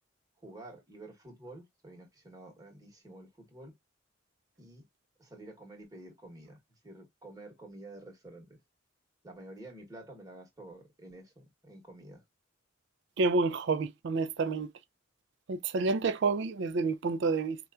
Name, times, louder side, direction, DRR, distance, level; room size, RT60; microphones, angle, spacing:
voice 1, 0.4-3.7 4.6-4.8 5.2-8.6 9.2-12.2, right 1 dB, 20° right, 1.0 m, -50 dB
voice 2, 13.2-14.7 15.5-17.6, right 3 dB, 60° right, 0.4 m, -29 dB
4.2 x 2.3 x 2.3 m
head